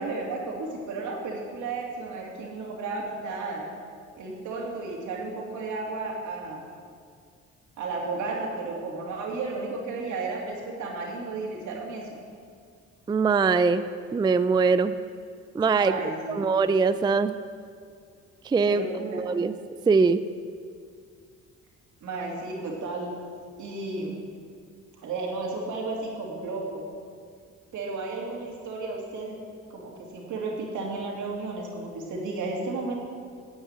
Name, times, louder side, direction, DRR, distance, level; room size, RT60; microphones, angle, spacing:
voice 1, 0.0-3.7 4.1-6.6 7.8-12.1 15.8-16.4 18.6-19.2 22.0-23.1 23.6-24.2 25.0-26.8 27.7-29.4 29.7-33.0, right 3 dB, 80° right, -2 dB, 2.8 m, -33 dB
voice 2, 13.1-13.8 14.1-14.9 15.5-15.9 16.3-17.3 18.4-18.8 19.1-19.5 19.9-20.2, right 4 dB, 15° right, 12 dB, 0.3 m, -22 dB
9.8 x 8.0 x 8.1 m, 2.2 s
cardioid pair, 90°, 30 cm